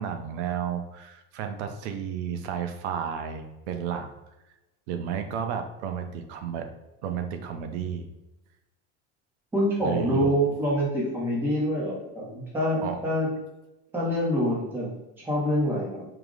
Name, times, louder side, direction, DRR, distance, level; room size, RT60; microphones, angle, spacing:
voice 1, 0.0-4.1 4.9-6.7 7.0-8.1 9.8-10.3 12.8-13.0, right 8 dB, 75° right, 7 dB, 0.6 m, -32 dB
voice 2, 9.5-13.3 13.9-16.1, equal, 5° right, -4 dB, 0.6 m, -26 dB
4.7 x 2.0 x 3.7 m, 0.99 s
cardioid pair, 180°, 34 cm